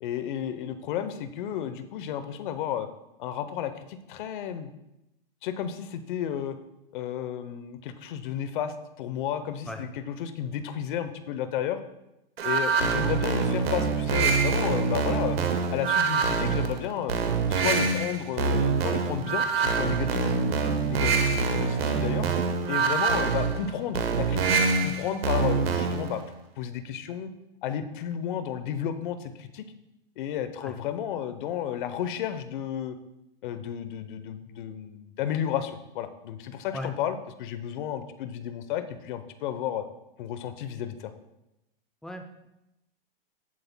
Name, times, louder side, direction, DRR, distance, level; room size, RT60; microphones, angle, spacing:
voice 1, 0.0-2.9 3.2-4.7 5.4-6.6 6.9-11.8 12.4-15.4 15.7-17.1 17.5-22.3 22.7-26.2 26.6-27.3 27.6-29.7 30.2-33.0 33.4-39.8 40.2-41.1, left 9 dB, 55° left, 11 dB, 0.8 m, -32 dB
sound 1, 12.4-26.2, right 5 dB, 90° right, 1.2 m, -25 dB
voice 2, 42.0-42.5, left 1 dB, ahead, 5 dB, 0.5 m, -37 dB
15.0 x 7.7 x 2.2 m, 0.90 s
hypercardioid pair, 135°, 29 cm